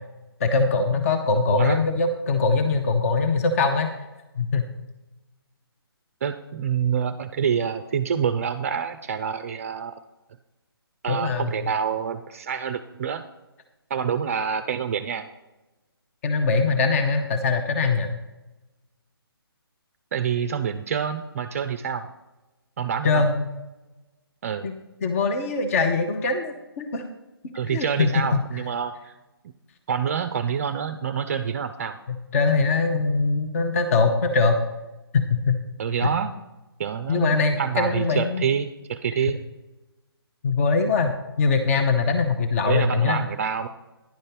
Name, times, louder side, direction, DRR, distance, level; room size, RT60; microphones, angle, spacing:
voice 1, 0.4-3.9 4.4-4.7 11.1-11.5 16.2-18.1 23.0-23.4 24.6-24.7 25.0-27.0 27.7-28.4 32.3-34.6 35.1-35.6 36.0-36.1 37.1-38.4 40.4-43.2, left 4 dB, 35° left, 6 dB, 0.7 m, -22 dB
voice 2, 6.2-10.0 11.0-13.2 13.9-15.3 20.1-22.1 22.8-23.3 24.4-24.7 27.5-29.1 29.9-32.0 35.8-36.3 36.8-39.4 42.7-43.7, right 7 dB, 35° right, 9 dB, 0.4 m, -27 dB
10.5 x 5.3 x 5.8 m, 1.1 s
figure-of-eight pair, 145°, 13 cm